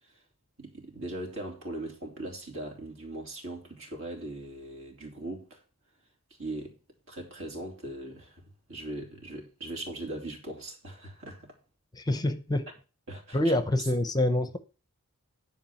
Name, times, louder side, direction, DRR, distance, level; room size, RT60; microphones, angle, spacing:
voice 1, 0.6-5.6 6.4-6.7 7.1-11.6 13.1-13.4, right 1 dB, 60° right, 3.4 m, -40 dB
voice 2, 11.9-12.7 13.3-14.6, left 1 dB, 20° left, 0.7 m, -26 dB
10.5 x 4.8 x 7.1 m
head